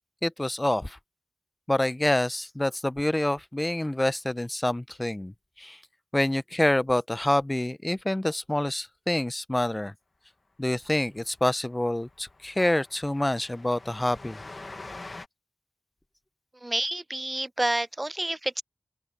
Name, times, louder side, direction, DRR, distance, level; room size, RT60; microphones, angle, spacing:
voice 1, 0.2-1.0 1.7-5.3 5.6-5.8 6.1-9.9 10.6-14.4, left 1 dB, 20° left, 0.6 m, -27 dB
Train, 11.0-11.2 11.4-11.5 11.9-15.3, left 2 dB, 50° left, 1.3 m, -45 dB
voice 2, 16.6-18.6, right 1 dB, 25° right, 0.3 m, -29 dB
open air
wide cardioid pair, 80°, 0 cm